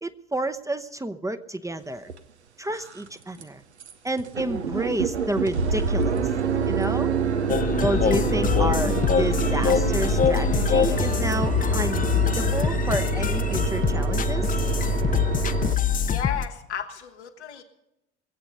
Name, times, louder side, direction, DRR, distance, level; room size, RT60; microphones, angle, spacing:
voice 1, 0.0-2.1 2.6-3.6 4.0-6.2 6.6-7.1 7.8-14.4, right 1 dB, 10° right, 9 dB, 0.8 m, -30 dB
sound 1, 2.1-2.2 2.7-3.1 3.4-3.5 3.8-15.7, right 5 dB, 85° right, 0.7 m, -26 dB
sound 2, 7.5-16.5, left 7 dB, 25° left, 0.6 m, -24 dB
voice 2, 16.1-17.6, left 8 dB, 80° left, 3 dB, 1.4 m, -33 dB
21.5 x 8.2 x 6.5 m, 0.88 s
figure-of-eight pair, 55°, 33 cm